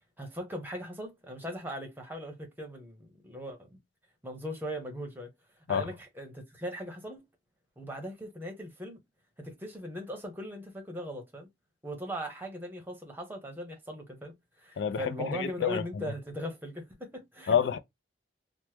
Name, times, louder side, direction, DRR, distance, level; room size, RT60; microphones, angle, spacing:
voice 1, 0.2-3.8 4.2-5.3 5.7-7.2 7.8-9.0 9.4-11.5 11.8-17.6, equal, 10° right, 0.8 m, -39 dB
voice 2, 14.8-15.8 17.5-17.8, left 7 dB, 75° left, 0.3 m, -28 dB
3.0 x 2.1 x 3.2 m
head